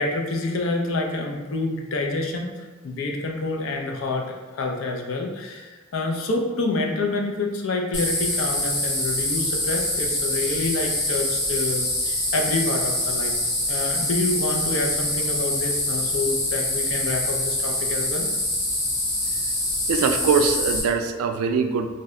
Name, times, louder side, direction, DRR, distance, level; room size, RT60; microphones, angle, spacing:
voice 1, 0.0-4.2 4.5-13.3 13.7-18.3, left 2 dB, 65° left, 1 dB, 0.4 m, -27 dB
sound 1, 7.9-20.8, left 1 dB, 35° left, 0.8 m, -25 dB
voice 2, 19.9-21.9, right 5 dB, 85° right, 11 dB, 0.3 m, -22 dB
2.6 x 2.1 x 3.6 m, 1.3 s
head